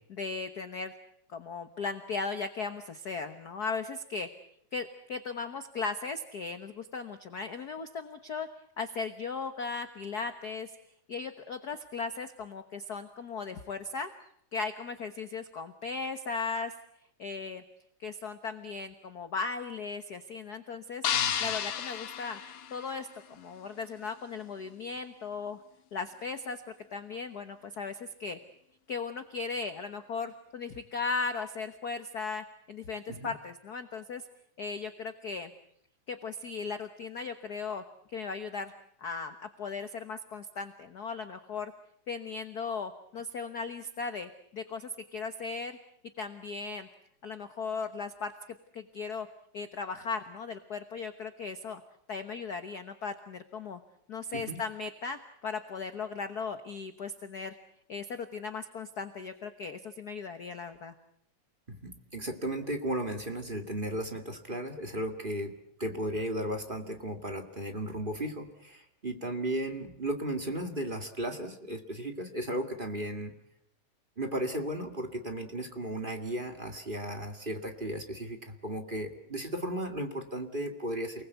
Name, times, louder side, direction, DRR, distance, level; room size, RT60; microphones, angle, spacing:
voice 1, 0.1-0.9 1.3-4.3 4.7-8.5 8.8-10.7 11.1-14.1 14.5-16.7 17.2-17.6 18.0-21.0 21.4-22.4 22.7-25.6 25.9-26.6 26.9-28.4 28.9-34.2 34.6-35.5 36.1-37.8 38.1-38.7 39.0-41.7 42.1-45.8 46.2-46.9 47.2-48.3 48.7-49.3 49.5-51.8 52.1-53.8 54.1-57.5 57.9-60.9, left 4 dB, 55° left, 9 dB, 1.1 m, -37 dB
sound 1, 21.0-23.3, left 9 dB, 85° left, 3.0 m, -32 dB
voice 2, 61.7-73.3 74.2-81.3, right 1 dB, 20° right, 5 dB, 1.8 m, -35 dB
29.0 x 20.5 x 8.2 m, 0.71 s
omnidirectional pair, 3.5 m